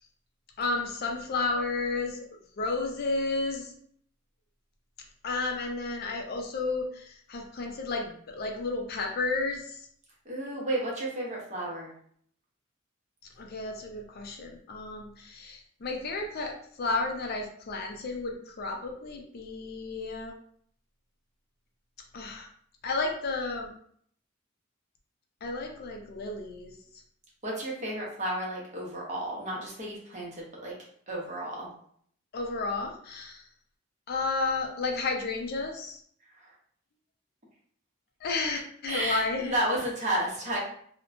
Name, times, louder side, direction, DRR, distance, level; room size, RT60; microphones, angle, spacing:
voice 1, 0.6-2.3 2.6-3.7 5.2-9.8 13.4-20.3 22.1-22.5 22.8-23.7 25.4-26.8 32.3-33.4 34.1-36.0 38.2-39.6, left 3 dB, 50° left, 2 dB, 0.4 m, -32 dB
voice 2, 10.3-11.9 27.4-30.7 31.1-31.7 36.4-36.5 38.9-40.6, right 1 dB, 35° right, -4 dB, 0.8 m, -32 dB
2.9 x 2.1 x 2.5 m, 0.62 s
head